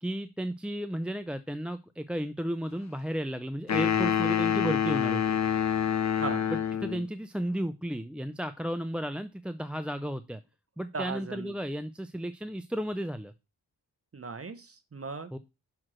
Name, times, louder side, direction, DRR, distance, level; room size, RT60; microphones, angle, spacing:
voice 1, 0.0-5.4 6.8-10.4 10.8-13.3 15.3-15.4, equal, 5° right, 11 dB, 0.3 m, -33 dB
sound 1, 3.7-7.0, left 8 dB, 45° left, 0.7 m, -27 dB
voice 2, 6.2-6.5 10.9-11.5 14.1-15.3, right 4 dB, 35° right, 9 dB, 0.8 m, -37 dB
6.2 x 4.5 x 6.0 m, 0.27 s
wide cardioid pair, 85°, 40 cm